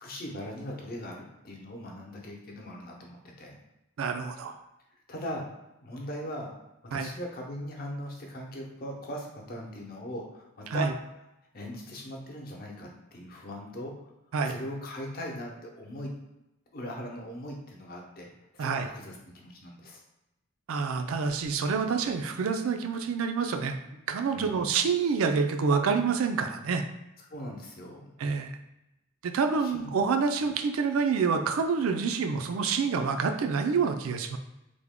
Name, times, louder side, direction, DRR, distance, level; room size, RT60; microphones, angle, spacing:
voice 1, 0.0-3.6 5.1-5.4 5.8-6.5 6.8-10.9 11.5-13.9 14.4-16.1 16.7-18.3 18.5-20.0 24.3-24.7 27.3-28.0 29.6-29.9, equal, 45° left, 0 dB, 0.7 m, -39 dB
voice 2, 4.0-4.6 6.9-7.1 10.7-10.9 14.3-14.6 18.6-18.9 20.7-23.8 24.1-26.8 28.2-28.5 29.2-34.4, right 5 dB, 85° right, 6 dB, 0.4 m, -27 dB
3.4 x 2.1 x 3.6 m, 0.91 s
head